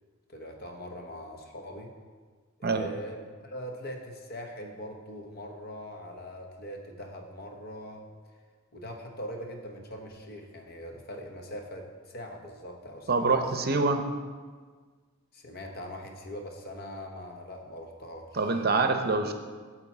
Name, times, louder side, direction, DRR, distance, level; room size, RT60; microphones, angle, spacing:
voice 1, 0.3-1.9 2.6-8.1 8.7-13.4 15.3-18.6, equal, 50° left, 3 dB, 1.1 m, -41 dB
voice 2, 13.1-14.0 18.3-19.3, right 3 dB, 45° right, 6 dB, 0.7 m, -25 dB
8.9 x 4.3 x 7.1 m, 1.5 s
head